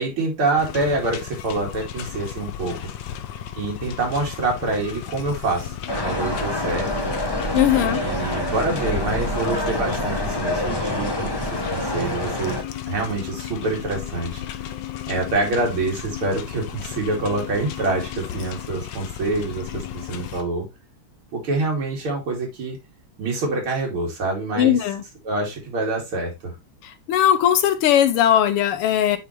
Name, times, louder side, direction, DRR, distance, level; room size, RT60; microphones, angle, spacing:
voice 1, 0.0-2.7 3.6-5.7 6.0-7.1 7.8-12.6 12.9-14.4 15.1-20.7 21.3-22.8 23.2-24.8 25.2-26.5, right 2 dB, 75° right, 3.3 m, -26 dB
sound 1, 0.6-20.4, left 11 dB, 65° left, 1.3 m, -34 dB
sound 2, 5.9-12.6, left 1 dB, 20° left, 0.6 m, -26 dB
voice 2, 7.5-8.0 24.6-25.0 26.8-29.2, left 10 dB, 90° left, 1.8 m, -19 dB
8.9 x 4.0 x 3.1 m
omnidirectional pair, 2.4 m